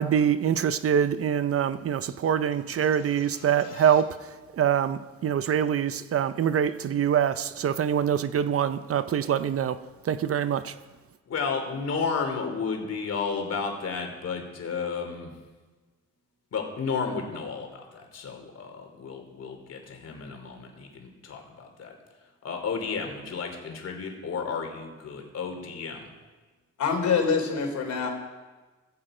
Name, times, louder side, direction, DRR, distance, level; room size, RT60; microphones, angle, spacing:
voice 1, 0.0-4.2 4.5-9.8 10.0-10.7, right 8 dB, 50° right, 0.6 m, -24 dB
voice 2, 2.8-4.0 11.3-15.3 16.5-21.9 22.4-26.1, left 5 dB, 55° left, 3.3 m, -33 dB
voice 3, 26.8-28.1, left 5 dB, 70° left, 3.5 m, -25 dB
15.5 x 14.5 x 5.0 m
cardioid pair, 120°, 29 cm